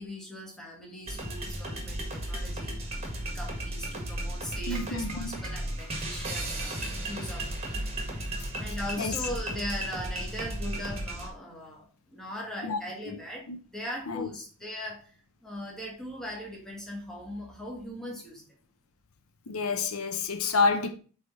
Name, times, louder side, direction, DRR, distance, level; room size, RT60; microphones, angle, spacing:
voice 1, 0.0-2.7 3.0-7.8 8.6-18.6, equal, ahead, 1.7 m, -40 dB
sound 1, 1.1-11.3, right 1 dB, 30° right, 1.6 m, -35 dB
voice 2, 4.7-5.3 8.4-8.5 9.0-9.1 12.6-12.8 13.5-13.6 14.1-14.3 19.5-20.9, left 4 dB, 75° left, 0.7 m, -28 dB
7.9 x 3.5 x 4.1 m
head